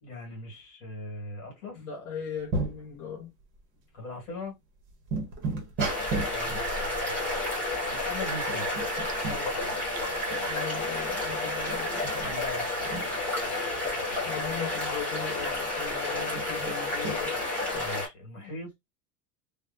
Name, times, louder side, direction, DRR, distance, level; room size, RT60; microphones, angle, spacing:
voice 1, 0.0-1.9 3.9-4.5 6.3-7.4 7.9-8.7 9.1-9.7 12.2-12.7 17.7-18.8, left 2 dB, 50° left, 1.9 m, -40 dB
voice 2, 1.8-3.3 10.4-12.0 14.2-17.4 17.7-17.9, left 6 dB, 30° left, 0.6 m, -38 dB
sound 1, 2.5-2.8 3.6-3.7 4.3-4.4 4.9-6.5 8.5-9.4 9.7-9.8 10.2-10.5 12.0-13.1 16.4-17.2, right 3 dB, 25° right, 0.8 m, -33 dB
sound 2, 5.8-18.1, left 2 dB, 5° left, 1.3 m, -31 dB
sound 3, 6.0-13.3, right 8 dB, 60° right, 0.7 m, -41 dB
3.3 x 2.1 x 2.6 m
supercardioid pair, 175°, 45 cm